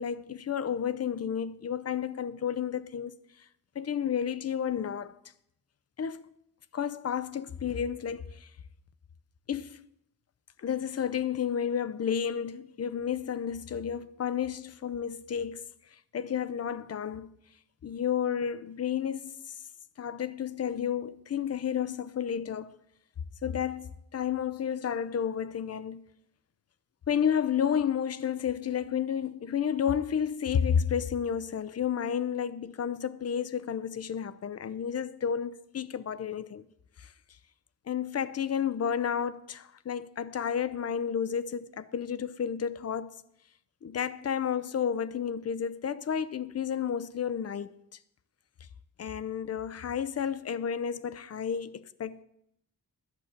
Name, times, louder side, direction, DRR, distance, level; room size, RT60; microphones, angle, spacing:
voice 1, 0.0-3.1 3.7-5.2 6.0-6.2 6.7-8.5 9.5-9.9 10.6-15.7 16.1-17.3 17.8-19.6 20.0-22.8 23.4-26.0 27.1-36.7 37.0-37.1 37.9-43.2 43.8-47.7 49.0-52.2, left 8 dB, 50° left, 0.6 m, -31 dB
11.5 x 6.5 x 8.8 m
wide cardioid pair, 120°, 33 cm